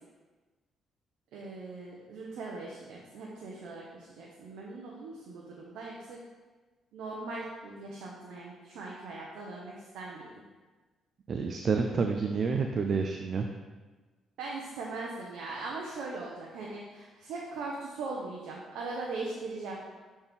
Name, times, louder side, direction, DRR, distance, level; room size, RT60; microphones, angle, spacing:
voice 1, 1.3-6.2 6.9-10.4 14.4-19.8, right 3 dB, 85° right, -3 dB, 0.9 m, -40 dB
voice 2, 11.3-13.5, right 5 dB, 50° right, 4 dB, 0.4 m, -29 dB
7.5 x 4.3 x 3.5 m, 1.3 s
cardioid pair, 90°, 0 cm